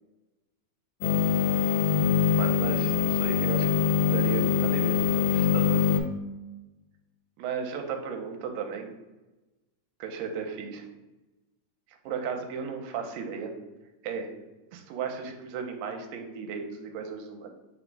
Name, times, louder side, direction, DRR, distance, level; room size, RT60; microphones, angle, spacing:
sound 1, 1.0-6.0, left 7 dB, 85° left, 1.6 m, -24 dB
voice 1, 2.4-5.8 7.4-8.9 10.0-10.9 12.1-13.5 14.0-14.3 14.7-17.5, right 6 dB, 85° right, 4 dB, 2.2 m, -35 dB
5.5 x 2.0 x 4.5 m, 1.1 s
omnidirectional pair, 4.0 m